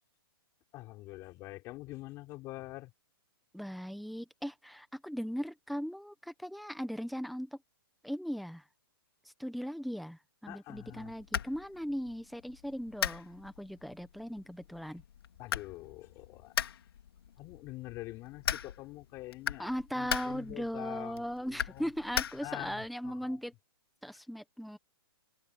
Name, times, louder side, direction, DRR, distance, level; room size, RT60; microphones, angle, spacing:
voice 1, 0.7-2.9 10.5-11.1 15.4-16.5 17.4-21.9 22.4-23.4 24.1-24.2, left 19 dB, 20° left, 6.0 m, -45 dB
voice 2, 3.5-7.5 8.0-8.6 9.4-15.0 19.6-23.5 24.0-24.8, equal, ahead, 0.9 m, -38 dB
sound 1, 10.7-22.8, left 8 dB, 70° left, 2.4 m, -40 dB
hypercardioid pair, 170°, 13 cm